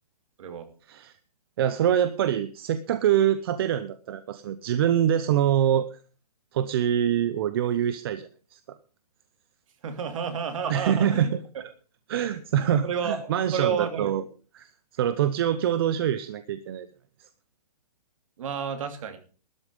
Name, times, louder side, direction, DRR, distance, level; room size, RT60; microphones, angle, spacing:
voice 1, 1.6-6.0 6.5-8.8 10.7-11.4 12.1-14.2 14.5-16.9 17.2-17.3, right 10 dB, 35° right, 12 dB, 0.7 m, -25 dB
voice 2, 9.8-11.3 12.8-14.3 18.4-19.2, right 7 dB, 55° right, 7 dB, 2.9 m, -30 dB
12.5 x 11.5 x 5.4 m, 0.38 s
hypercardioid pair, 165°, 21 cm